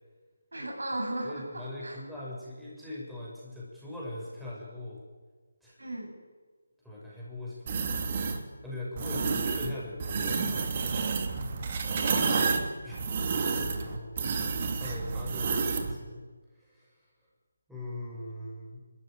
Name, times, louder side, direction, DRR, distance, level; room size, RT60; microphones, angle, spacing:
voice 1, 0.5-2.0 5.8-6.1 9.1-9.7 11.9-12.5, right 1 dB, 75° right, 1 dB, 7.6 m, -36 dB
voice 2, 1.2-5.0 5.6-5.8 6.8-8.3 8.6-10.7 12.8-13.0 13.6-16.2 16.5-17.1 17.7-18.8, left 1 dB, ahead, -7 dB, 6.5 m, -41 dB
sound 1, 7.7-8.4 9.0-9.7 10.0-15.9, right 5 dB, 35° right, 2.6 m, -30 dB
29.5 x 14.0 x 9.4 m, 1.4 s
figure-of-eight pair, 155°, 0 cm